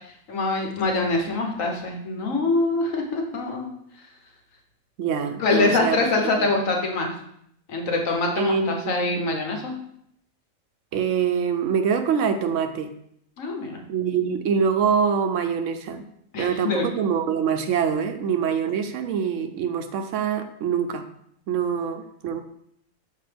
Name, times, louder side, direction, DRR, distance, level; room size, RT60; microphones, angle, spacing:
voice 1, 0.3-3.7 5.4-7.1 7.7-9.7 13.4-13.8 16.3-16.9, left 3 dB, 75° left, 1 dB, 1.4 m, -24 dB
voice 2, 5.0-6.0 6.4-6.5 8.4-9.2 10.9-12.9 13.9-16.1 16.4-21.1 21.5-22.4, right 7 dB, 70° right, 8 dB, 0.9 m, -24 dB
6.4 x 4.9 x 3.4 m, 0.71 s
omnidirectional pair, 1.4 m